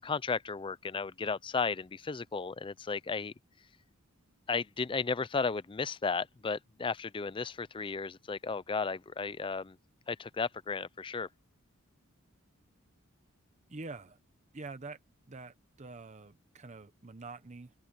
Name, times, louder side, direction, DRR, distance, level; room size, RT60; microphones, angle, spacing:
voice 1, 0.0-3.3 4.5-9.8 10.1-11.3, left 4 dB, 25° left, 0.4 m, -34 dB
voice 2, 13.7-14.2 14.5-15.0 15.3-17.7, right 3 dB, 35° right, 0.8 m, -46 dB
open air
head